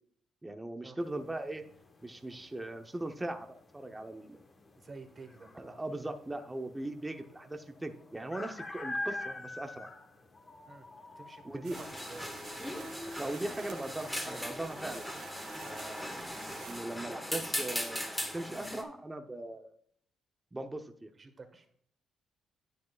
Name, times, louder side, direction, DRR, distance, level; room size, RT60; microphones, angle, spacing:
voice 1, 0.4-1.6 2.0-4.4 5.5-9.9 11.4-11.8 13.2-15.0 15.6-19.7 20.5-21.1, right 1 dB, 15° right, 6 dB, 0.9 m, -39 dB
sound 1, 1.0-15.0, left 2 dB, 35° left, 1.4 m, -47 dB
voice 2, 4.7-5.8 10.6-10.9 11.1-12.7 13.0-13.3 21.1-21.7, right 3 dB, 35° right, 7 dB, 1.6 m, -51 dB
sound 2, 11.6-16.8, right 7 dB, 85° right, 1.7 m, -51 dB
sound 3, 11.7-18.8, left 1 dB, 10° left, 1.8 m, -39 dB
9.7 x 9.6 x 2.5 m, 0.64 s
cardioid pair, 90°, 0 cm